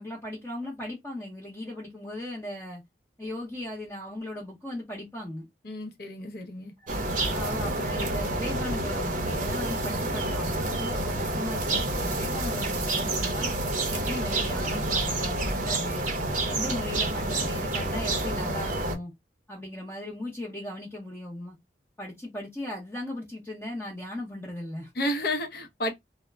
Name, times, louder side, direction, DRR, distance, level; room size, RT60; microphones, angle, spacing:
voice 1, 0.0-2.8 3.2-5.5 6.8-13.5 13.9-16.1 16.5-19.1 19.5-21.6 22.0-24.9, left 1 dB, 10° left, 0.6 m, -37 dB
voice 2, 5.6-6.7 25.0-25.9, left 1 dB, 55° left, 0.6 m, -31 dB
sound 1, 6.9-18.9, right 2 dB, 45° right, 0.6 m, -28 dB
2.0 x 2.0 x 3.3 m
head